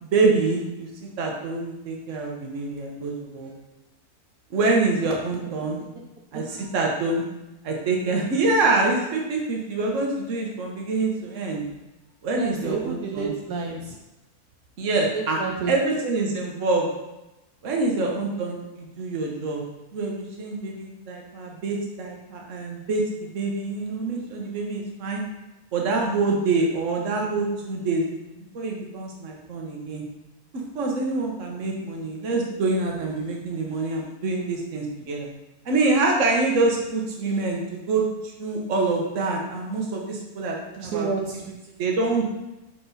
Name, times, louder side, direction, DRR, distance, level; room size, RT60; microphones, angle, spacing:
voice 1, 0.0-3.5 4.5-5.8 6.3-6.4 6.7-7.2 7.6-11.6 12.2-13.3 14.8-15.4 15.7-16.9 17.6-19.6 19.9-25.2 25.7-28.2 28.5-30.0 30.7-35.3 35.6-41.1 41.8-42.4, right 3 dB, 55° right, 0 dB, 1.4 m, -25 dB
voice 2, 12.3-14.0 14.9-15.7 40.8-41.7, right 5 dB, 75° right, 0 dB, 1.2 m, -31 dB
5.9 x 4.6 x 4.1 m, 1.0 s
omnidirectional pair, 1.7 m